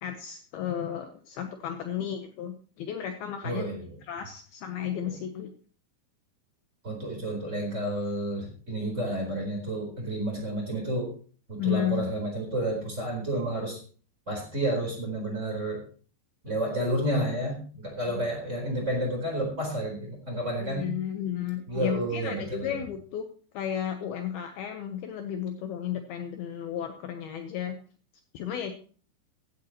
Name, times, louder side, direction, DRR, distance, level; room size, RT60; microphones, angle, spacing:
voice 1, 0.0-3.6 4.0-5.5 11.6-12.1 18.1-18.3 20.6-23.3 23.5-27.8 28.3-28.7, left 9 dB, 85° left, 6 dB, 2.2 m, -33 dB
voice 2, 3.4-4.0 5.1-5.2 6.8-11.1 11.5-13.8 14.3-15.8 16.4-20.9 21.7-22.8, right 1 dB, 15° right, 0 dB, 3.7 m, -30 dB
15.5 x 12.0 x 3.0 m, 0.41 s
omnidirectional pair, 5.8 m